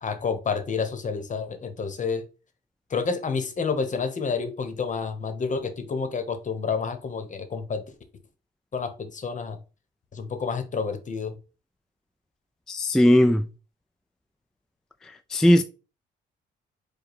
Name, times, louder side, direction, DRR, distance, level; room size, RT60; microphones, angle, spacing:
voice 1, 0.0-2.2 2.9-7.8 8.7-9.6 10.1-11.4, left 5 dB, 40° left, 1.0 m, -29 dB
voice 2, 12.7-13.4 15.0-15.6, left 1 dB, 5° left, 0.3 m, -19 dB
4.9 x 2.2 x 4.8 m
cardioid pair, 90°, 20 cm